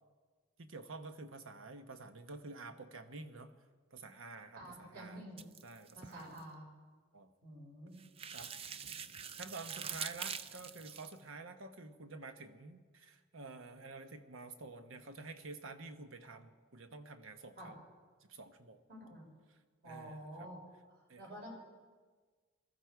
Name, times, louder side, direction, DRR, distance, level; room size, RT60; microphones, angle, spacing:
voice 1, 0.6-3.5 3.9-5.2 5.6-6.4 7.1-7.3 8.3-8.9 9.4-17.8 18.3-18.8 19.8-20.5 21.1-21.3, right 3 dB, 85° right, 8 dB, 1.1 m, -50 dB
voice 2, 4.5-5.5 5.9-6.7 7.4-8.0 17.6-17.7 18.9-19.2 19.8-20.6 21.2-21.5, right 1 dB, 50° right, -1 dB, 4.8 m, -49 dB
sound 1, 5.4-6.4 8.0-11.1, right 7 dB, 30° right, 0.4 m, -44 dB
21.0 x 13.5 x 4.7 m, 1.4 s
head